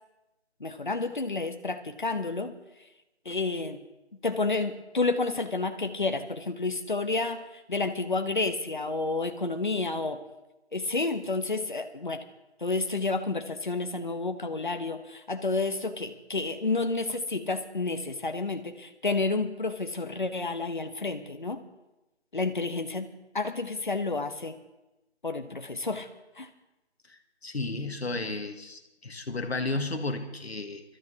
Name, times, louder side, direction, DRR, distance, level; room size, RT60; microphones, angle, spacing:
voice 1, 0.6-2.6 3.2-3.8 4.2-10.2 10.7-12.2 12.6-21.6 22.3-24.6 25.2-26.1 26.4-26.5, left 3 dB, 45° left, 8 dB, 0.9 m, -30 dB
voice 2, 27.1-30.8, left 2 dB, 65° left, 6 dB, 1.6 m, -33 dB
24.5 x 13.0 x 2.8 m, 1.0 s
figure-of-eight pair, 180°, 35 cm